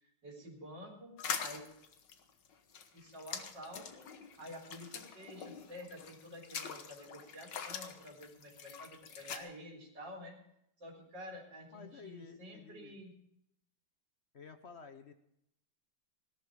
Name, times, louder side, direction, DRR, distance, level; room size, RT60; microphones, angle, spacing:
voice 1, 0.0-1.1 1.4-1.6 2.9-4.0 4.4-10.4 10.8-13.1, left 1 dB, 90° right, -1 dB, 4.2 m, -50 dB
sound 1, 1.2-9.4, left 6 dB, 85° left, 1.9 m, -44 dB
voice 2, 11.7-13.0 14.3-15.1, left 5 dB, 45° left, 8 dB, 1.0 m, -52 dB
17.5 x 12.5 x 4.7 m, 0.76 s
omnidirectional pair, 1.9 m